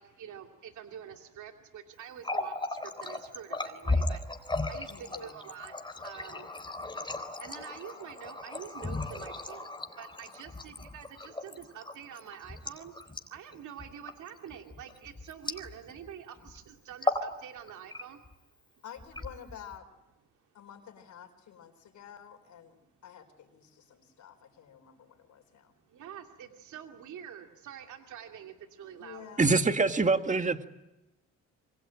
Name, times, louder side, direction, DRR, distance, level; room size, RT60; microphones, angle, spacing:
voice 1, 0.0-6.5 7.0-18.2 18.7-18.8 25.9-29.5, right 9 dB, 75° right, 4 dB, 2.6 m, -47 dB
Water tap faucet, 2.1-16.1 16.4-16.6 16.9-17.3 17.7-18.3 19.0-19.8, left 2 dB, 15° left, 3.7 m, -36 dB
voice 2, 4.9-5.4 18.8-19.9 20.5-25.7 29.0-29.5, left 8 dB, 70° left, 8 dB, 4.3 m, -50 dB
voice 3, 29.4-30.7, right 3 dB, 25° right, 8 dB, 1.9 m, -24 dB
27.0 x 24.0 x 8.9 m, 0.94 s
cardioid pair, 90°, 30 cm